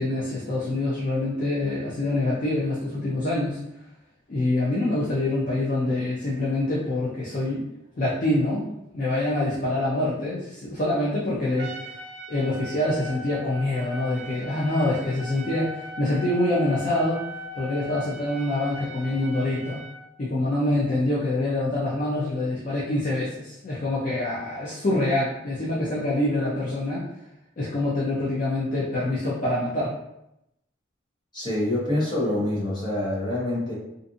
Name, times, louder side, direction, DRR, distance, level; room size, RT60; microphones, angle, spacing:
voice 1, 0.0-3.6 4.3-7.6 8.0-8.7 8.9-12.0 12.3-17.3 17.6-19.8 20.2-27.0 27.6-29.9, left 1 dB, 45° left, -7 dB, 0.5 m, -25 dB
Trumpet, 11.6-20.0, equal, 65° right, 0.4 m, -39 dB
voice 2, 31.3-33.7, left 1 dB, 25° left, -7 dB, 0.9 m, -26 dB
2.5 x 2.5 x 2.5 m, 0.84 s
head